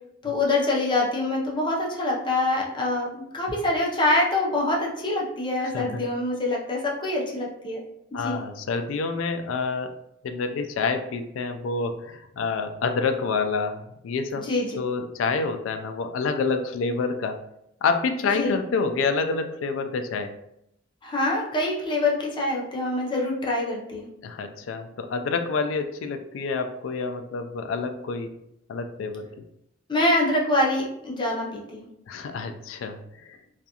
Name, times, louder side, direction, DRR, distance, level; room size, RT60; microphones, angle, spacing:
voice 1, 0.2-7.8 8.1-8.4 14.3-14.8 18.3-18.6 21.0-24.1 29.9-31.9, left 2 dB, 25° left, -2 dB, 0.5 m, -25 dB
voice 2, 5.7-6.1 8.1-9.9 10.2-14.5 14.8-17.4 17.8-20.3 24.2-28.3 28.7-29.3 32.1-33.4, left 4 dB, 80° left, 7 dB, 0.3 m, -28 dB
2.4 x 2.3 x 2.7 m, 0.78 s
head